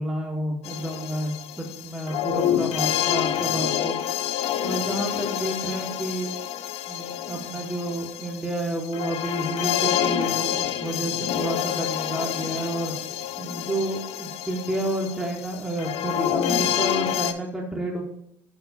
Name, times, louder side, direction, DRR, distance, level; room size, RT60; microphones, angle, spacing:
voice 1, 0.0-4.0 4.6-6.3 6.9-12.9 13.4-18.0, right 1 dB, 5° right, -2 dB, 1.5 m, -30 dB
sound 1, 0.6-17.3, left 11 dB, 60° left, 0.5 m, -28 dB
7.1 x 3.6 x 4.1 m, 0.75 s
hypercardioid pair, 75°, 12 cm